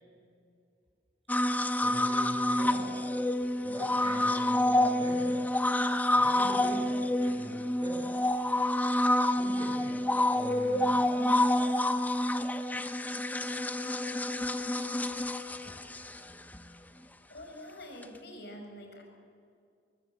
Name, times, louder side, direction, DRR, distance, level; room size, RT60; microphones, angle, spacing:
sound 1, 1.3-16.6 18.0-18.1, left 1 dB, 10° left, 0.9 m, -28 dB
voice 1, 1.8-3.1 3.6-5.6 6.1-8.3 9.4-11.5, right 1 dB, 35° right, 0 dB, 4.5 m, -43 dB
voice 2, 17.3-19.0, left 1 dB, 60° left, 2 dB, 5.7 m, -46 dB
25.0 x 23.0 x 8.1 m, 2.3 s
head